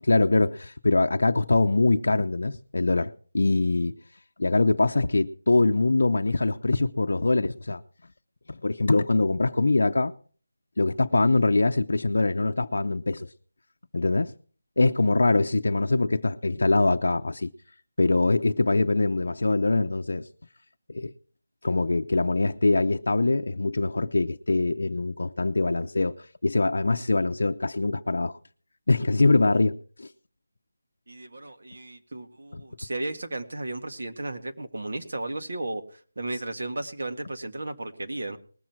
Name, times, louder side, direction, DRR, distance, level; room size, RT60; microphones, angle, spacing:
voice 1, 0.1-3.9 4.4-7.8 8.5-10.1 10.8-13.3 13.9-14.3 14.8-17.5 18.0-20.3 20.9-21.1 21.6-26.2 26.4-28.4 28.9-30.1 32.5-32.6, left 2 dB, 65° left, 6 dB, 0.6 m, -23 dB
voice 2, 31.1-35.8 36.2-38.4, right 2 dB, 60° right, 5 dB, 1.8 m, -34 dB
20.0 x 7.4 x 4.6 m, 0.42 s
figure-of-eight pair, 175°, 0 cm